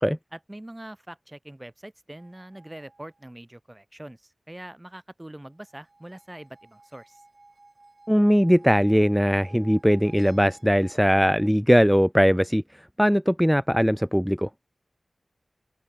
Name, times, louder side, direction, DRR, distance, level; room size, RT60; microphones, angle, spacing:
voice 1, 0.3-7.2, right 1 dB, 15° right, 2.6 m, -43 dB
sound 1, 2.2-3.2 5.7-11.5, right 3 dB, 45° right, 5.4 m, -53 dB
voice 2, 8.1-12.6 13.0-14.5, equal, ahead, 0.3 m, -20 dB
wide cardioid pair, 90°, 0 cm